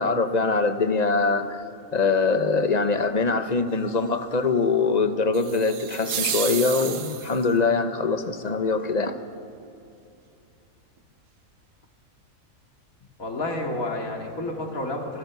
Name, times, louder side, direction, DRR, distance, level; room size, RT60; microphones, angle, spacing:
voice 1, 0.0-1.6 1.9-9.1, left 4 dB, 35° left, 9 dB, 1.1 m, -23 dB
sound 1, 5.3-7.5, right 9 dB, 70° right, 1.2 m, -31 dB
voice 2, 13.2-15.2, left 2 dB, 80° left, 2 dB, 2.8 m, -30 dB
27.0 x 17.0 x 6.9 m, 2.6 s
omnidirectional pair, 1.4 m